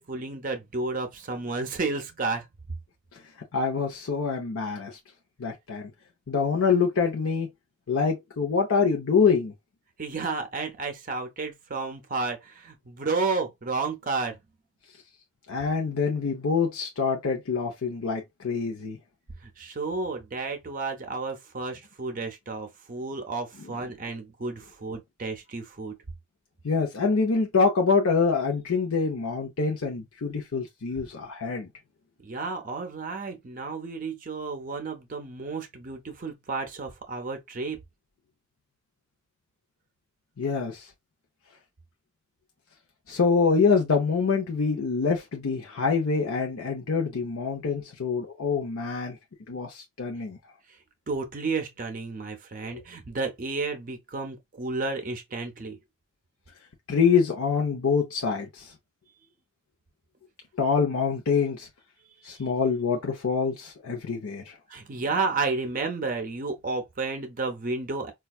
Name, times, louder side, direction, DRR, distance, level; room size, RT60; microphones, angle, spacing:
voice 1, 0.0-2.5 10.0-14.4 19.4-25.9 32.2-37.8 51.1-55.8 64.7-68.1, right 3 dB, 40° right, 0.5 m, -32 dB
voice 2, 3.5-5.0 5.4-5.9 6.3-7.5 7.9-9.5 15.5-19.0 26.6-31.7 40.4-40.9 43.1-49.2 49.5-50.4 52.7-52.8 56.9-58.7 60.6-61.7 62.2-64.6, left 5 dB, 85° left, 0.6 m, -25 dB
4.3 x 2.3 x 2.3 m
head